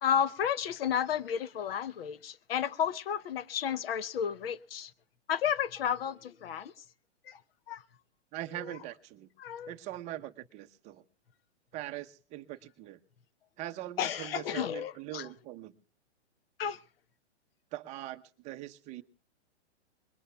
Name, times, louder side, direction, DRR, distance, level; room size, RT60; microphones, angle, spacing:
voice 1, 0.0-4.9 5.3-6.8 7.2-7.4 7.7-7.8 8.6-8.7 9.4-9.7 14.0-15.3 16.6-16.8, left 8 dB, 55° left, 0.9 m, -32 dB
voice 2, 8.3-9.3 9.7-11.0 11.7-13.0 13.6-15.7 17.7-19.0, right 14 dB, 20° right, 0.8 m, -42 dB
24.5 x 21.5 x 2.3 m
hypercardioid pair, 150°, 34 cm